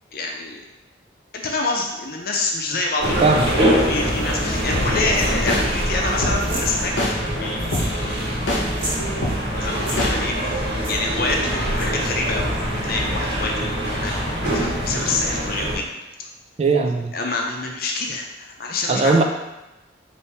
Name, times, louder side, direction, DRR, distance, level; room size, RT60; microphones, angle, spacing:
voice 1, 0.1-0.6 1.3-3.2 3.5-6.9 7.4-8.4 9.5-14.2 14.5-15.9 17.1-19.2, left 3 dB, 55° left, 0 dB, 0.6 m, -27 dB
sound 1, 3.0-15.8, equal, 75° right, 1.5 m, -24 dB
voice 2, 3.2-3.7 16.6-17.1 18.9-19.2, right 3 dB, 35° right, 4 dB, 0.3 m, -19 dB
sound 2, 4.7-4.9 5.5-5.6 6.2-6.4 7.0-7.1 7.7-7.9 8.5-8.6 9.2-9.4 10.0-10.1, left 1 dB, 85° left, 0.8 m, -22 dB
sound 3, 6.4-6.7 7.6-8.2 8.6-9.0 9.7-10.0 10.8-11.0 11.7-12.1, right 1 dB, 55° right, 1.2 m, -32 dB
4.2 x 2.7 x 3.4 m, 1.0 s
head